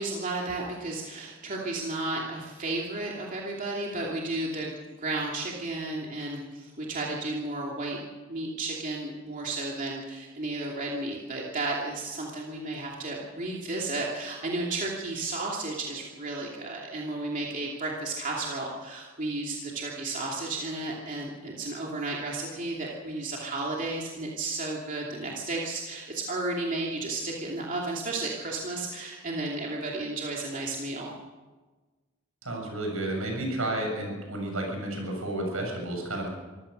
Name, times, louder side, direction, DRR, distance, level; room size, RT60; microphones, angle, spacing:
voice 1, 0.0-8.0 8.3-31.1, right 2 dB, 40° right, -2 dB, 2.8 m, -33 dB
voice 2, 32.4-36.3, right 1 dB, 75° right, 1 dB, 7.2 m, -31 dB
25.0 x 16.0 x 6.6 m, 1.3 s
head